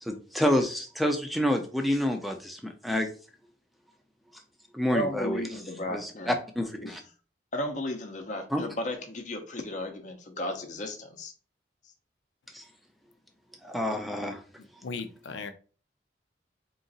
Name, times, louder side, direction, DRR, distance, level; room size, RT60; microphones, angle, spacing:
voice 1, 0.0-3.1 4.7-5.4 5.9-7.0 8.5-8.6 12.5-12.6 13.6-14.4, left 1 dB, ahead, 5 dB, 0.5 m, -28 dB
voice 2, 4.9-6.3 6.8-6.9 7.5-11.3, left 1 dB, 40° left, 5 dB, 0.6 m, -34 dB
voice 3, 14.8-15.5, left 4 dB, 90° left, 9 dB, 0.5 m, -36 dB
3.9 x 2.5 x 3.9 m, 0.39 s
head